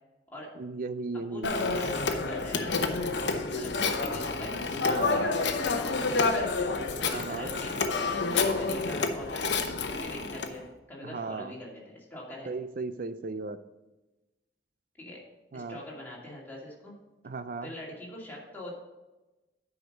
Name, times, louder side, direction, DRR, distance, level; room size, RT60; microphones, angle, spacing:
voice 1, 0.6-1.5 4.9-5.4 7.1-7.5 11.0-11.5 12.5-13.6 15.5-15.8 17.2-17.7, right 4 dB, 50° right, 12 dB, 0.5 m, -36 dB
voice 2, 1.3-6.5 7.0-12.5 15.0-15.2 15.5-16.9 17.6-18.7, left 1 dB, 10° left, -5 dB, 2.3 m, -43 dB
Telephone, 1.4-10.5, left 4 dB, 80° left, 0.8 m, -29 dB
9.5 x 5.0 x 5.2 m, 1.1 s
head